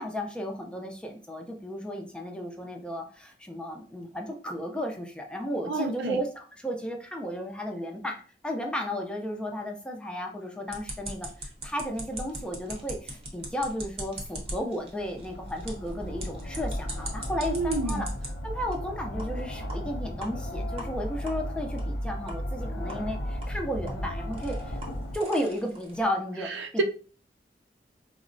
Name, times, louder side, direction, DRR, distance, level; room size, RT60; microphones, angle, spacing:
voice 1, 0.0-8.2 8.4-18.1 18.4-24.8 25.1-26.8, equal, 5° left, 2 dB, 0.4 m, -34 dB
voice 2, 5.7-6.2 17.5-18.0 26.5-26.8, right 3 dB, 75° right, 5 dB, 0.4 m, -29 dB
sound 1, 10.7-18.3 18.7-18.8 19.2-19.3 19.7-19.8 20.2-20.3 20.8-20.9 21.3-21.4 21.8-21.9 22.3-22.4 22.9-23.0 23.4-26.1, right 1 dB, 35° right, 0.7 m, -41 dB
sound 2, 14.8-25.2, equal, 60° left, 0.6 m, -35 dB
3.6 x 2.0 x 2.5 m, 0.38 s
head